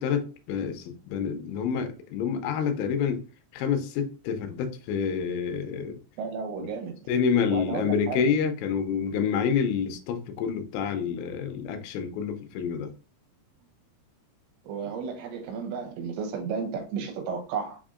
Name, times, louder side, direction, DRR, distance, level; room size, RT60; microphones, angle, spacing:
voice 1, 0.0-3.2 3.5-6.0 6.6-6.7 7.1-12.9, left 6 dB, 80° left, 2.9 m, -28 dB
voice 2, 6.2-7.1 7.5-8.2 14.6-17.8, right 6 dB, 80° right, 3.1 m, -33 dB
6.7 x 2.7 x 2.4 m
omnidirectional pair, 5.3 m